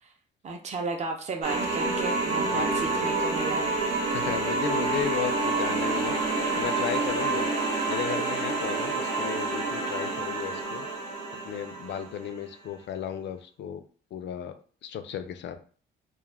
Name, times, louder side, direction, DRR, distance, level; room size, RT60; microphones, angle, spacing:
voice 1, 0.4-3.6, right 3 dB, 35° right, 3 dB, 0.5 m, -34 dB
sound 1, 1.4-12.2, right 3 dB, 80° right, 1.0 m, -28 dB
voice 2, 2.5-3.0 4.1-7.5 7.9-10.9 11.4-13.8 14.1-14.5 14.8-15.6, left 9 dB, 65° left, 9 dB, 0.4 m, -35 dB
2.3 x 2.1 x 3.2 m, 0.43 s
cardioid pair, 90°, 20 cm